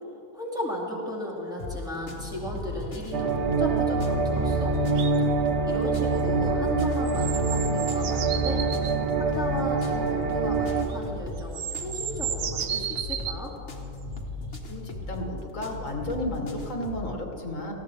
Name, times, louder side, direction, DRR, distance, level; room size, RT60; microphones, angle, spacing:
voice 1, 0.3-4.8 5.6-8.7 9.2-13.5, left 1 dB, 5° right, -4 dB, 2.5 m, -35 dB
sound 1, 1.6-17.1, left 2 dB, 65° left, 1.8 m, -37 dB
sound 2, 3.1-10.8, right 4 dB, 65° right, 1.2 m, -25 dB
sound 3, 5.0-5.2 7.1-9.0 10.9-11.0 11.4-13.4 14.5-14.6, right 9 dB, 80° right, 1.1 m, -33 dB
voice 2, 14.7-17.7, left 1 dB, 80° left, 1 dB, 2.0 m, -33 dB
18.5 x 15.5 x 3.5 m, 2.9 s
omnidirectional pair, 1.3 m